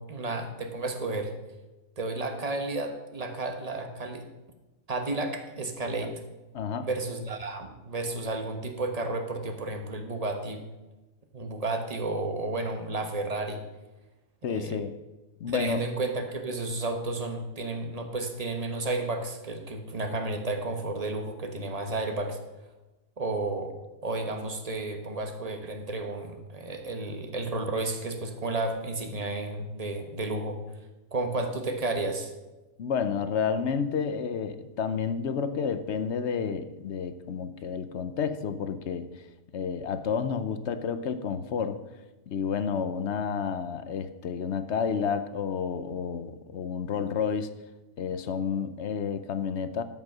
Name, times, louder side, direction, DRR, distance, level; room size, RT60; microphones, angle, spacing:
voice 1, 0.0-1.3 2.0-4.2 4.9-6.1 6.8-10.6 11.3-13.6 14.5-14.8 15.4-22.4 23.2-23.7 24.0-30.6 31.1-32.3, right 2 dB, 30° right, 5 dB, 1.2 m, -32 dB
voice 2, 6.5-6.9 14.4-14.9 15.4-15.8 32.8-39.2 39.5-41.8 42.3-47.5 48.0-49.8, left 6 dB, 60° left, 11 dB, 0.9 m, -30 dB
13.0 x 5.6 x 6.1 m, 1.1 s
omnidirectional pair, 1.5 m